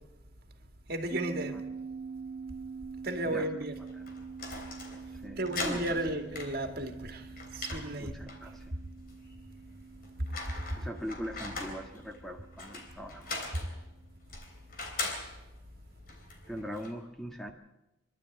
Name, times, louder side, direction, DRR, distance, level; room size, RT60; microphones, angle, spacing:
voice 1, 0.9-1.6 3.0-3.7 5.4-8.2, right 1 dB, 50° right, 2.3 m, -34 dB
sound 1, 1.1-13.9, right 5 dB, 35° right, 1.3 m, -45 dB
sound 2, 3.7-16.9, left 3 dB, 50° left, 3.6 m, -42 dB
voice 2, 5.1-6.0 8.0-8.8 10.7-13.6 16.5-17.5, equal, ahead, 1.6 m, -41 dB
26.5 x 12.0 x 9.1 m
head